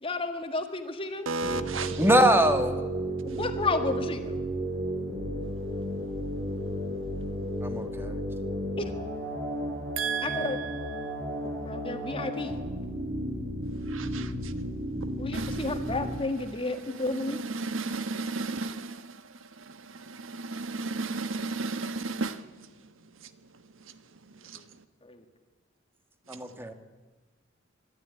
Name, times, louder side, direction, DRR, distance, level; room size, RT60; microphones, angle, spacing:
voice 1, 0.0-1.3 3.3-4.4 8.8-8.9 10.2-10.6 11.6-12.6 15.2-17.4 25.1-25.2, left 3 dB, 30° left, 7 dB, 1.8 m, -32 dB
voice 2, 1.3-2.0 10.0-11.1 13.9-14.5 15.3-15.7 17.2-19.1 19.7-22.4, right 4 dB, 85° right, 11 dB, 1.3 m, -33 dB
sound 1, 1.4-16.2, right 1 dB, 55° right, 4.2 m, -33 dB
voice 3, 2.0-2.8 7.6-8.2 26.3-26.7, equal, 10° right, 7 dB, 1.7 m, -23 dB
24.5 x 12.0 x 9.4 m, 1.2 s
head